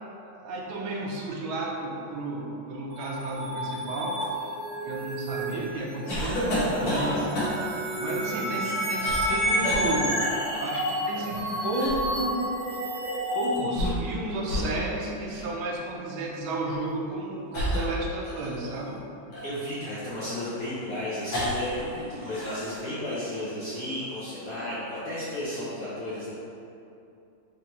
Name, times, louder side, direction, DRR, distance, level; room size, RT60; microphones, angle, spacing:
voice 1, 0.4-4.2 4.9-7.3 8.0-10.2 10.5-12.4 12.9-13.0 13.3-19.0, right 2 dB, 85° right, -2 dB, 1.5 m, -32 dB
sound 1, 2.9-13.6, equal, 65° right, 1.3 m, -30 dB
Shakespeares play a death in the play, 6.1-7.8 8.6-9.4 9.6-9.9 11.1-12.1 13.5-14.2 14.4-14.7 15.3-15.5 16.6-16.8 17.5-18.8 19.3-21.8 22.1-22.8, equal, 80° left, 1.9 m, -31 dB
voice 2, 6.8-7.3 19.3-26.3, left 1 dB, 65° left, -9 dB, 0.8 m, -33 dB
5.2 x 2.7 x 2.8 m, 2.7 s
omnidirectional pair, 2.2 m